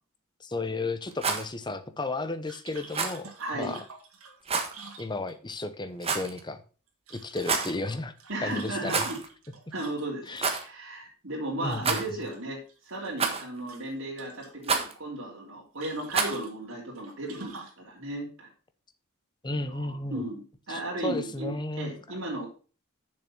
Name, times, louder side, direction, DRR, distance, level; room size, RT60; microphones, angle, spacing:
voice 1, 0.4-3.8 5.0-6.6 7.1-8.1 8.4-9.0 10.3-10.7 11.6-12.0 19.4-20.2 20.7-21.9, left 2 dB, 20° left, 0.9 m, -33 dB
Rattle, 1.1-1.5 2.9-3.2 4.5-4.7 6.0-6.4 7.3-7.8 8.8-9.3 9.5-9.6 10.4-10.6 11.8-12.3 13.2-13.6 14.6-14.9 16.1-16.4, right 5 dB, 25° right, 1.4 m, -28 dB
sound 1, 2.5-5.6 6.9-10.3 11.6-12.4 12.7-13.4 13.7-14.5 15.8-17.8, right 4 dB, 80° right, 2.4 m, -47 dB
voice 2, 3.4-3.8 8.3-9.2 9.7-18.5 19.6-22.5, right 1 dB, 60° right, 3.1 m, -35 dB
6.9 x 6.8 x 6.0 m
head